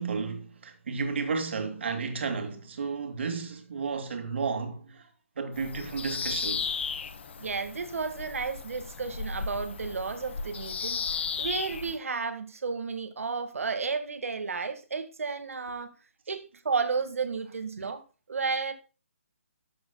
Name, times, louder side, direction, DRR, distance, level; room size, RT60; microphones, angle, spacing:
voice 1, 0.0-5.0 5.4-6.7 17.8-17.9, right 5 dB, 55° right, 2.4 m, -32 dB
Bird vocalization bird call bird song, 5.5-12.0, left 5 dB, 55° left, 1.2 m, -35 dB
voice 2, 7.4-11.0 11.4-15.9 16.3-18.7, right 4 dB, 85° right, 1.7 m, -32 dB
13.0 x 7.0 x 2.2 m
hypercardioid pair, 175°, 7 cm